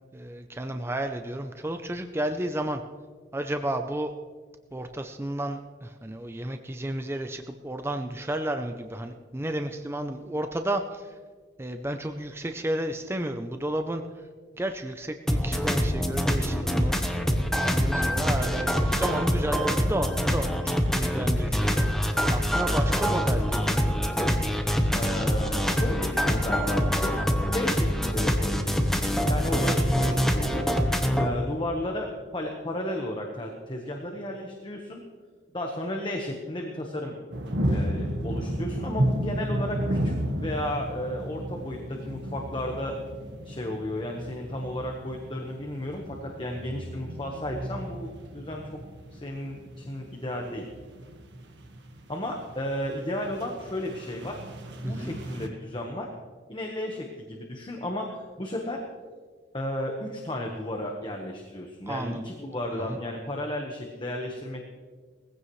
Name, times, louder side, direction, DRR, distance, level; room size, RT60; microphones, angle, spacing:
voice 1, 0.1-2.8 3.3-4.1 4.7-11.1 11.6-14.0 14.6-16.9 17.6-23.9 54.8-55.2 61.9-62.4 62.7-63.0, right 1 dB, 15° right, 6 dB, 0.6 m, -32 dB
sound 1, 15.3-31.3, equal, ahead, 1.1 m, -25 dB
voice 2, 24.9-27.1 27.5-30.6 31.2-35.0 35.5-37.1 37.7-43.0 43.4-48.7 49.1-50.7 52.1-54.4 54.8-56.1 56.5-58.8 59.5-64.6, left 1 dB, 25° left, 1 dB, 1.3 m, -33 dB
sound 2, 37.3-55.5, equal, 75° right, 1.4 m, -33 dB
20.0 x 15.5 x 3.2 m, 1.6 s
head